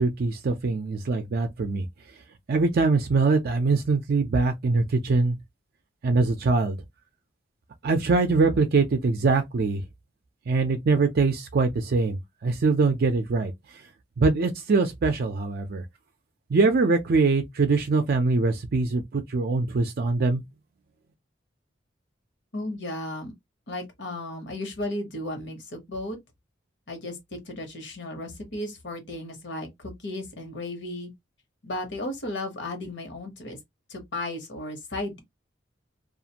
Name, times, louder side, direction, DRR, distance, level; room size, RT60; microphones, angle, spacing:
voice 1, 0.0-1.9 2.5-5.4 6.0-6.8 7.8-9.8 10.5-13.5 14.2-15.8 16.5-20.4, right 3 dB, 55° right, 0.4 m, -23 dB
voice 2, 22.5-23.3 23.7-26.2 26.9-31.1 31.6-33.6 33.9-35.2, left 1 dB, 65° left, 1.1 m, -34 dB
2.5 x 2.4 x 2.8 m
head